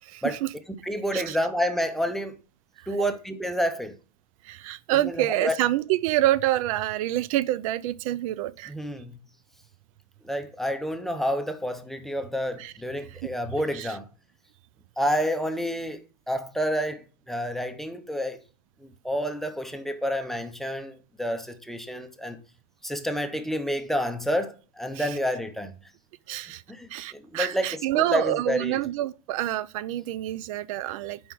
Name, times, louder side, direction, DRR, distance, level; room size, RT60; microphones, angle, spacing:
voice 1, 0.0-0.5 1.1-1.4 2.8-3.1 4.4-8.7 12.6-12.7 13.2-13.3 13.7-14.0 24.9-25.1 26.3-26.6 26.9-31.2, right 14 dB, 60° right, 0.4 m, -27 dB
voice 2, 0.8-2.3 2.9-4.0 5.0-5.5 8.7-9.1 10.2-14.1 15.0-18.4 18.8-22.4 22.8-25.7 26.7-27.7 27.9-28.8, equal, ahead, 0.6 m, -29 dB
5.3 x 4.7 x 6.1 m
supercardioid pair, 145°, 20 cm